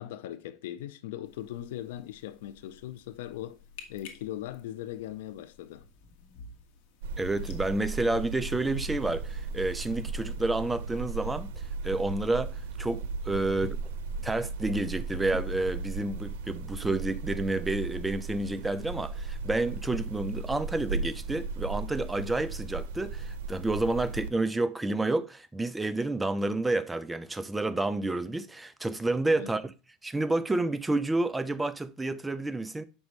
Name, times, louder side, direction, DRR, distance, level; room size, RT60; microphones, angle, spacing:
voice 1, 0.0-3.6 3.9-5.9 13.6-13.7 29.4-29.5, left 12 dB, 85° left, 0.5 m, -39 dB
sound 1, 1.2-8.5, left 5 dB, 70° left, 1.4 m, -53 dB
sound 2, 7.0-24.3, right 4 dB, 90° right, 0.8 m, -36 dB
voice 2, 7.2-11.5 11.8-13.8 14.2-29.7 30.0-32.8, right 2 dB, 10° right, 0.4 m, -30 dB
7.1 x 5.4 x 3.2 m
supercardioid pair, 150°, 0 cm